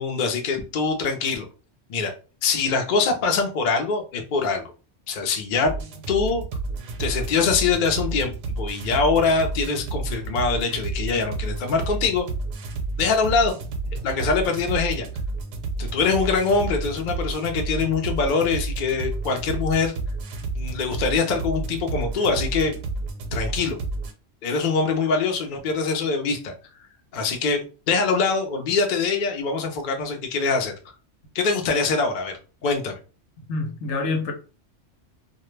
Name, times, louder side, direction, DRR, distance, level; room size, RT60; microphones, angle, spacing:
voice 1, 0.0-1.5 1.9-2.1 2.4-4.6 5.1-5.7 6.1-6.4 7.0-12.3 13.0-13.5 14.0-15.1 15.8-20.0 20.5-22.7 23.3-23.8 24.4-26.5 27.1-27.6 27.9-30.7 31.3-33.0, left 4 dB, 55° left, 0.6 m, -23 dB
sound 1, 5.6-24.1, right 3 dB, 80° right, 0.9 m, -30 dB
voice 2, 33.5-34.3, left 3 dB, 75° left, 0.9 m, -26 dB
2.2 x 2.1 x 3.1 m
omnidirectional pair, 1.2 m